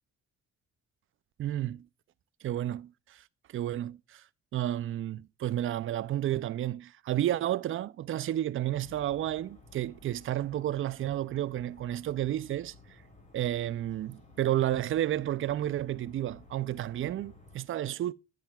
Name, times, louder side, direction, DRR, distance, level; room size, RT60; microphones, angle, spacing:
voice 1, 1.4-1.9 2.4-3.2 3.5-4.2 4.5-13.0 13.3-18.1, right 12 dB, 45° right, 0.4 m, -31 dB
sound 1, 8.7-17.6, left 3 dB, 25° left, 3.4 m, -55 dB
10.5 x 9.1 x 2.3 m
cardioid pair, 90°, 30 cm